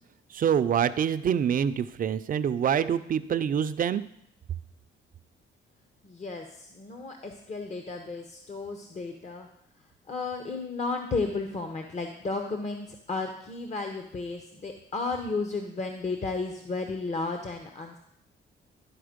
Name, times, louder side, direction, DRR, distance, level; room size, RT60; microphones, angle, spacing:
voice 1, 0.3-4.0, right 8 dB, 45° right, 12 dB, 0.5 m, -26 dB
voice 2, 6.0-9.5 10.1-18.0, left 3 dB, 35° left, 4 dB, 0.9 m, -33 dB
11.5 x 4.3 x 5.1 m, 0.75 s
cardioid pair, 90°, 20 cm